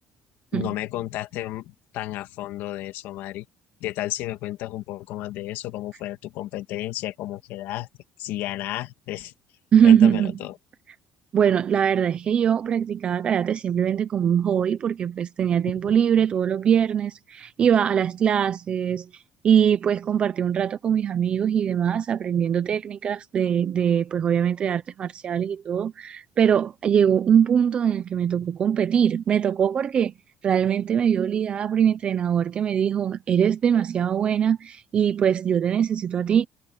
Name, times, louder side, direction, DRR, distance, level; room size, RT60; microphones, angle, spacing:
voice 1, 0.5-3.5 3.8-7.9 8.2-9.3 9.8-10.5, left 15 dB, 70° left, 2.0 m, -32 dB
voice 2, 9.7-10.3 11.3-30.1 30.4-36.5, right 8 dB, 30° right, 0.7 m, -22 dB
cardioid pair, 175°, 4 cm